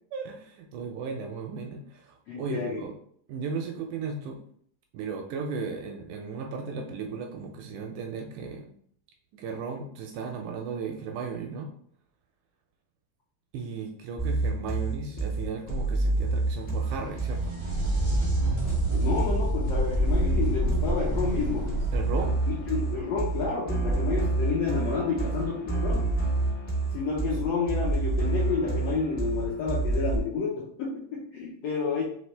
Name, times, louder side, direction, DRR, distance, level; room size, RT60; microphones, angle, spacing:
voice 1, 0.1-2.9 3.3-4.4 4.9-8.7 9.3-11.7 13.5-17.6 21.9-22.4, right 5 dB, 80° right, 3 dB, 1.8 m, -35 dB
voice 2, 2.3-2.8 18.9-21.8 22.7-26.1 26.9-32.0, left 4 dB, 80° left, -5 dB, 1.5 m, -30 dB
sound 1, 14.2-30.2, right 2 dB, 55° left, 0.6 m, -28 dB
sound 2, 16.2-23.8 27.2-27.3 28.3-28.4, equal, 65° right, 0.4 m, -30 dB
4.9 x 3.2 x 3.2 m, 0.63 s
omnidirectional pair, 3.9 m